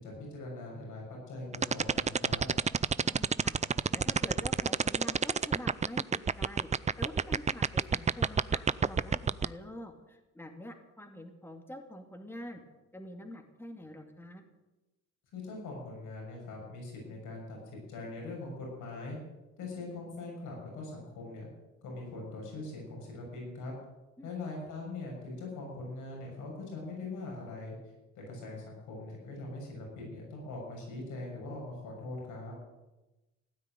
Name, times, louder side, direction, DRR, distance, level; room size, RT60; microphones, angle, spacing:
voice 1, 0.0-2.5 15.3-19.2 19.6-21.5 21.8-23.7 24.2-27.8 28.2-32.5, left 2 dB, 90° left, -1 dB, 7.0 m, -42 dB
sound 1, 1.5-9.4, right 6 dB, 25° right, 0.5 m, -27 dB
voice 2, 3.0-3.6 3.9-6.7 7.0-12.6 12.9-14.4 24.2-24.3, left 1 dB, 5° left, 4 dB, 2.3 m, -46 dB
16.0 x 9.6 x 9.1 m, 1.1 s
cardioid pair, 90°, 30 cm